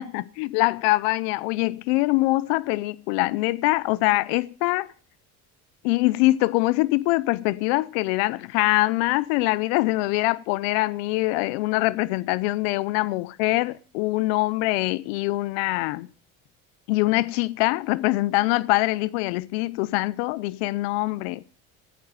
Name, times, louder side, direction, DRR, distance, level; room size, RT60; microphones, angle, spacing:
voice 1, 0.0-4.9 5.8-16.1 16.9-21.4, left 20 dB, 85° left, 0.6 m, -23 dB
16.5 x 9.5 x 6.6 m
cardioid pair, 130°, 31 cm